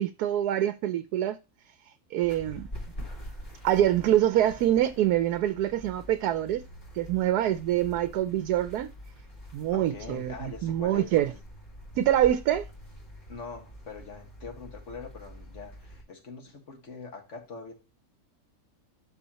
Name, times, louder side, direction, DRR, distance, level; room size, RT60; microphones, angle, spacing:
voice 1, 0.0-1.4 2.1-2.7 3.6-6.6 6.9-8.9 9.5-10.3 10.6-11.3 12.0-12.7, right 12 dB, 85° right, 1.1 m, -25 dB
sound 1, 2.2-16.0, equal, 30° left, 2.4 m, -45 dB
voice 2, 9.7-11.4 13.3-17.7, left 4 dB, 50° left, 2.0 m, -43 dB
12.5 x 4.3 x 2.9 m
omnidirectional pair, 1.6 m